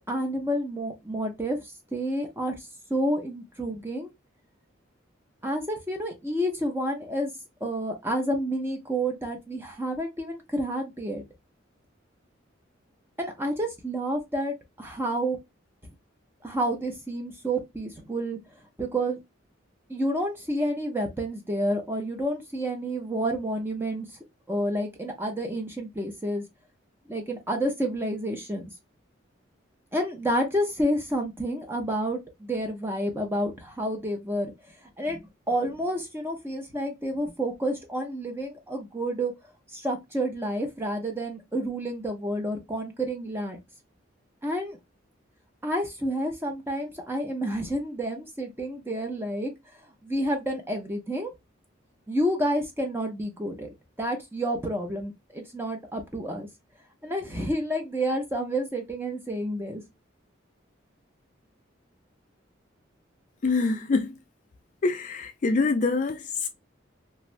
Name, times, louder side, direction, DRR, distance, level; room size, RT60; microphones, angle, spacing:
voice 1, 0.1-4.1 5.4-7.3 7.6-11.2 13.2-15.4 16.4-18.4 18.8-19.2 19.9-24.1 24.5-26.4 27.1-28.7 29.9-34.5 35.0-39.3 39.7-43.6 44.4-44.8 45.6-49.5 50.0-51.3 52.1-56.5 57.0-59.8, right 1 dB, 10° right, 0.7 m, -29 dB
voice 2, 63.4-64.1 64.8-66.5, left 3 dB, 40° left, 0.3 m, -25 dB
2.6 x 2.4 x 3.1 m
head